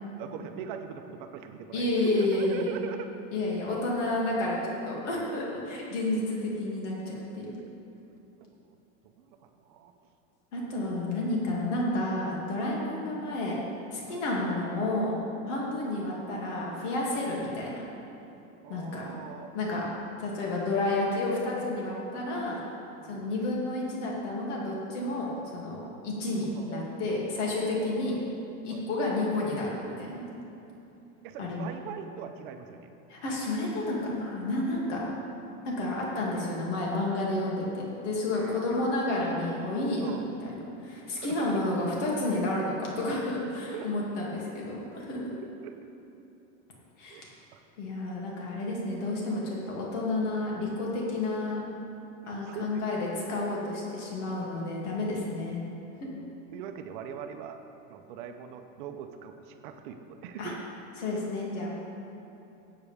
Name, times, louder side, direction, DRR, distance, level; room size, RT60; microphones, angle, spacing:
voice 1, 0.2-3.0 7.4-7.7 8.4-8.8 9.2-9.9 14.1-14.2 15.5-15.7 18.6-19.6 23.0-23.3 26.6-26.8 27.6-27.9 28.7-28.8 31.2-32.9 38.3-38.8 40.0-40.3 41.2-41.5 43.7-43.9 45.6-45.8 47.1-47.2 47.5-47.6 52.2-52.8 54.4-54.6 56.2-57.6 57.9-60.7, right 8 dB, 45° right, 6 dB, 0.7 m, -41 dB
voice 2, 1.7-2.7 3.3-7.6 10.5-13.5 13.9-15.1 15.5-17.8 18.7-19.1 19.5-19.9 20.2-22.6 23.1-28.2 28.6-30.3 31.4-31.7 33.1-35.1 35.6-45.4 47.0-47.2 47.8-51.6 52.3-55.6 56.0-56.1 60.4-60.5 61.0-61.7, left 2 dB, 70° left, -4 dB, 2.6 m, -30 dB
16.5 x 8.4 x 3.5 m, 2.9 s
supercardioid pair, 180°, 37 cm